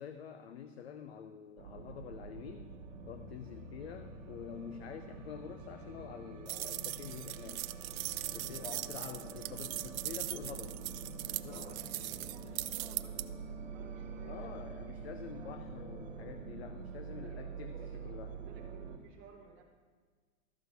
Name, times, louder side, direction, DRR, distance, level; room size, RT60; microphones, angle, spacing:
voice 1, 0.0-2.7 3.1-7.7 8.3-10.8 11.3-11.8 14.2-18.3, left 8 dB, 50° left, 9 dB, 0.5 m, -47 dB
sound 1, 1.6-19.0, right 4 dB, 65° right, 1.4 m, -46 dB
sound 2, 6.5-13.2, right 14 dB, 90° right, 0.5 m, -40 dB
voice 2, 11.4-15.6 17.2-19.6, right 6 dB, 20° right, -2 dB, 0.9 m, -58 dB
13.0 x 4.7 x 6.7 m, 1.5 s
hypercardioid pair, 180°, 40 cm